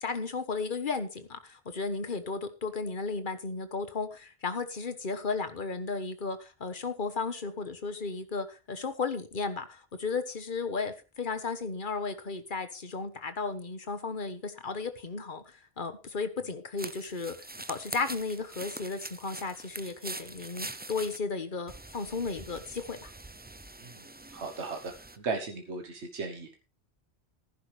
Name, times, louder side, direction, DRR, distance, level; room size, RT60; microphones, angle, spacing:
voice 1, 0.0-17.4 17.7-23.1, left 4 dB, 50° left, 10 dB, 1.5 m, -34 dB
sound 1, 16.8-21.2 21.7-25.2, right 2 dB, 15° right, 0.4 m, -44 dB
voice 2, 24.3-26.7, right 4 dB, 90° right, 5 dB, 1.5 m, -37 dB
15.0 x 11.0 x 3.4 m, 0.31 s
omnidirectional pair, 1.1 m